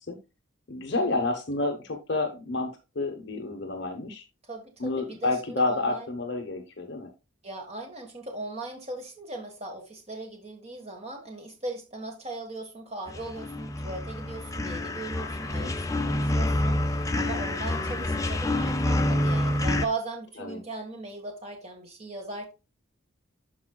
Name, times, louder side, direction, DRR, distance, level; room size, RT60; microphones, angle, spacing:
voice 1, 0.7-4.2 4.8-7.1 15.6-15.7 17.7-17.8 20.4-20.6, left 2 dB, 55° left, 4 dB, 1.0 m, -29 dB
voice 2, 4.5-6.1 7.4-22.5, right 2 dB, 30° right, 2 dB, 1.5 m, -38 dB
sound 1, 13.1-19.8, left 1 dB, 15° left, 0.4 m, -27 dB
12.5 x 4.6 x 2.3 m, 0.27 s
head